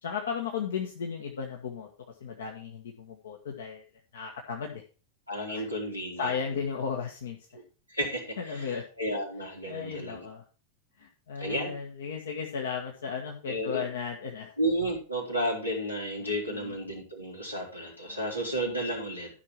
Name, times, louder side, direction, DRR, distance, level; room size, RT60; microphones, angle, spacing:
voice 1, 0.0-1.9 2.2-3.8 4.1-4.8 5.4-5.6 6.2-7.4 8.4-8.8 9.7-10.4 11.0-14.5 16.2-16.7 18.1-18.2, left 6 dB, 65° left, 1 dB, 1.5 m, -35 dB
voice 2, 5.3-6.3 7.9-10.3 11.4-11.7 13.5-13.8 14.6-19.3, equal, 85° left, -2 dB, 3.7 m, -32 dB
13.0 x 6.0 x 4.6 m, 0.34 s
figure-of-eight pair, 90°, 0 cm